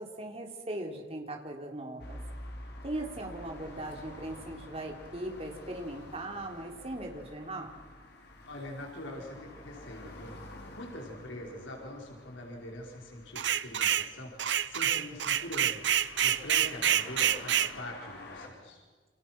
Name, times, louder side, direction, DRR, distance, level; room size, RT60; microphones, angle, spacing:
voice 1, 0.0-2.2 2.8-7.8, right 1 dB, 30° right, 2 dB, 3.8 m, -39 dB
sound 1, 2.0-18.5, left 1 dB, 55° left, 4.6 m, -49 dB
voice 2, 8.5-10.4 10.7-18.8, left 1 dB, 80° left, 0 dB, 5.1 m, -43 dB
sound 2, 13.4-14.1 14.4-17.7, right 10 dB, 65° right, 0.9 m, -27 dB
29.5 x 27.5 x 6.1 m, 1.5 s
head